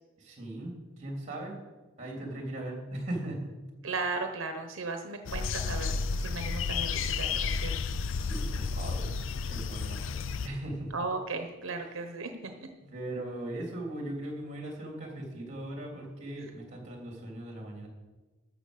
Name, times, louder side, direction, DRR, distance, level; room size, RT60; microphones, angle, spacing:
voice 1, 0.2-1.6 2.0-3.5 6.3-6.5 8.1-9.1 9.5-10.2 10.4-10.9 12.8-17.9, right 1 dB, 35° right, 0 dB, 3.3 m, -39 dB
voice 2, 3.8-6.0 6.2-7.8 10.9-12.5, right 3 dB, 80° right, 6 dB, 0.9 m, -36 dB
sound 1, 5.3-10.5, left 5 dB, 70° left, 0.5 m, -32 dB
13.5 x 6.2 x 6.5 m, 1.2 s
head